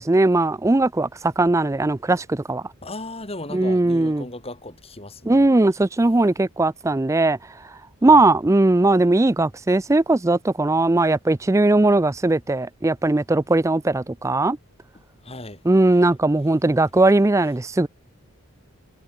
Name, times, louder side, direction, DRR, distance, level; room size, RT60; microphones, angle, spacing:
voice 1, 0.0-2.6 3.5-4.3 5.3-7.4 8.0-14.6 15.7-17.9, right 2 dB, 15° right, 0.4 m, -19 dB
voice 2, 2.8-5.4 8.0-8.1 15.2-15.6, left 2 dB, 25° left, 5.7 m, -36 dB
head